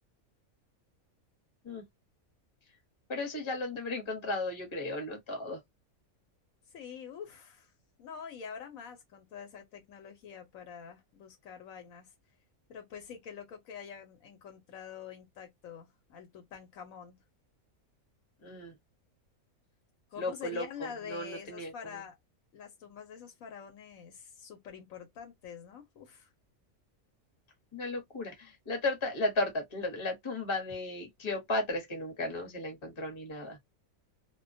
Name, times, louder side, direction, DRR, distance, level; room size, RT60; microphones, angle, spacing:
voice 1, 3.1-5.6 18.4-18.7 20.2-22.0 27.7-33.6, left 2 dB, 25° left, 0.8 m, -35 dB
voice 2, 6.7-7.7 8.0-12.1 12.7-17.2 20.1-22.2 22.5-26.3, left 7 dB, 70° left, 1.0 m, -46 dB
2.3 x 2.2 x 2.5 m
omnidirectional pair, 1.5 m